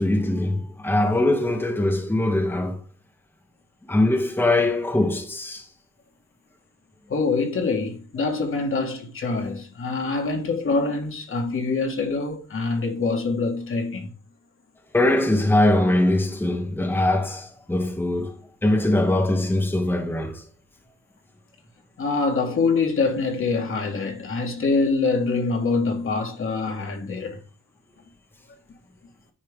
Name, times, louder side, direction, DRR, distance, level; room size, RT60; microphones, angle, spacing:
voice 1, 0.0-2.8 3.9-5.6 14.9-18.4 18.6-20.4, left 1 dB, 5° left, 1.3 m, -22 dB
voice 2, 7.1-14.1 22.0-27.4, left 4 dB, 45° left, 1.9 m, -25 dB
10.5 x 4.4 x 3.6 m
cardioid pair, 90°, 30 cm